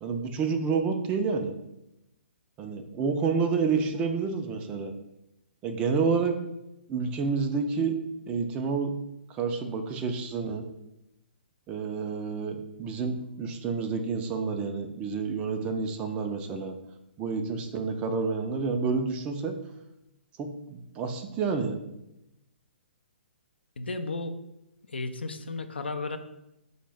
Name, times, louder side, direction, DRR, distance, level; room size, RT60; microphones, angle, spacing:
voice 1, 0.0-1.5 2.6-4.9 5.6-6.4 6.9-8.0 8.3-8.9 9.3-10.6 11.7-16.7 17.2-19.5 20.4-21.8, right 5 dB, 20° right, 6 dB, 0.3 m, -29 dB
voice 2, 23.8-24.4 24.9-26.2, left 3 dB, 70° left, 8 dB, 0.4 m, -33 dB
5.1 x 2.1 x 3.3 m, 0.88 s
figure-of-eight pair, 125°, 6 cm